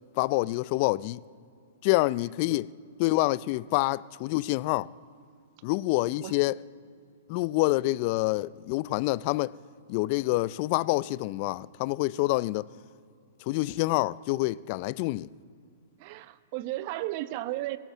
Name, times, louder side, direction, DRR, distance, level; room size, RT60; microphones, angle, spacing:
voice 1, 0.2-1.2 1.8-2.7 3.0-4.9 5.6-6.5 7.3-9.5 9.9-12.7 13.5-15.3, left 20 dB, 45° left, 0.4 m, -27 dB
voice 2, 16.0-17.8, right 16 dB, 45° right, 0.9 m, -34 dB
22.0 x 16.5 x 7.2 m
hypercardioid pair, 115°, 0 cm